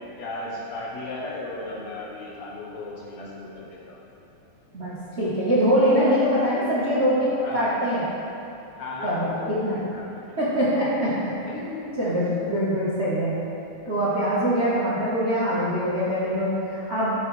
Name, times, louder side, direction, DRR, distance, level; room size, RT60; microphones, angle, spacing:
voice 1, 0.0-4.0 7.4-7.7 8.8-10.4 11.5-11.6, left 2 dB, 65° left, -4 dB, 2.3 m, -36 dB
voice 2, 4.7-8.0 9.0-9.8 10.4-11.1 11.5-13.3 13.8-17.2, equal, 35° right, -10 dB, 1.1 m, -23 dB
12.0 x 7.6 x 3.4 m, 2.9 s
omnidirectional pair, 3.6 m